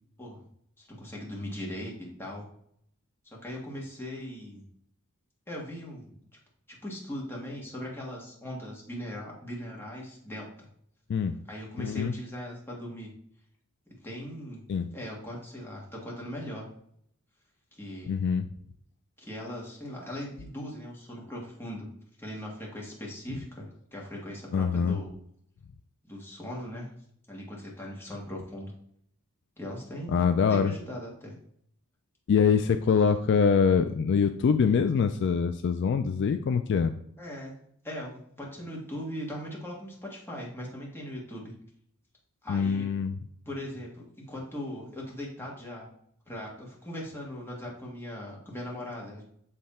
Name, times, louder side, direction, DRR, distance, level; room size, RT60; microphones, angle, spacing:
voice 1, 0.8-1.9 2.2-2.4 3.4-4.6 5.5-6.2 6.7-10.7 11.5-13.1 14.0-14.6 14.9-16.7 17.7-18.2 19.2-21.9 22.2-25.1 26.0-26.9 27.3-28.7 29.6-30.2 30.5-31.3 37.2-37.5 37.8-41.5 42.4-42.9 43.4-45.9 46.3-49.2, equal, 10° left, -3 dB, 1.7 m, -39 dB
voice 2, 11.8-12.1 14.7-14.9 18.1-18.5 24.5-25.0 30.1-30.7 32.3-36.9 42.5-43.1, left 6 dB, 55° left, 8 dB, 0.3 m, -24 dB
7.5 x 3.3 x 4.2 m, 0.68 s
head